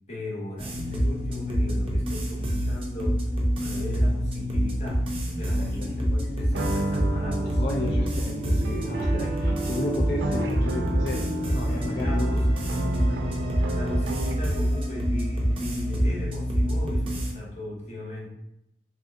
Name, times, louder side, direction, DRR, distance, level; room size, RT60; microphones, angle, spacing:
voice 1, 0.1-3.2 3.6-8.0 12.0-12.5 13.7-18.3, left 1 dB, 40° left, -4 dB, 0.9 m, -38 dB
sound 1, 0.6-17.3, equal, 30° right, 0.5 m, -26 dB
sound 2, 6.5-14.6, right 2 dB, 85° right, 0.4 m, -32 dB
voice 2, 7.6-12.3 12.8-12.9, left 2 dB, 70° left, -2 dB, 0.4 m, -32 dB
3.2 x 2.7 x 2.5 m, 0.82 s
head